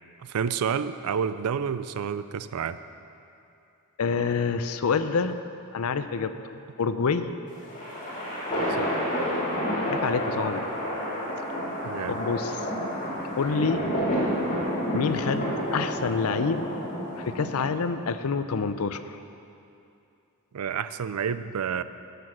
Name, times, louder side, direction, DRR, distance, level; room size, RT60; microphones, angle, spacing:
voice 1, 0.3-2.8 8.8-8.9 11.8-12.2 20.5-21.8, right 7 dB, 85° right, 13 dB, 0.4 m, -29 dB
voice 2, 4.0-5.4 5.7-7.3 9.9-10.7 12.1-12.7 13.4-13.8 14.9-16.6 17.2-19.2, left 5 dB, 75° left, 11 dB, 0.5 m, -27 dB
sound 1, 7.5-17.9, equal, 35° left, 2.7 m, -30 dB
12.5 x 6.8 x 6.0 m, 2.7 s
head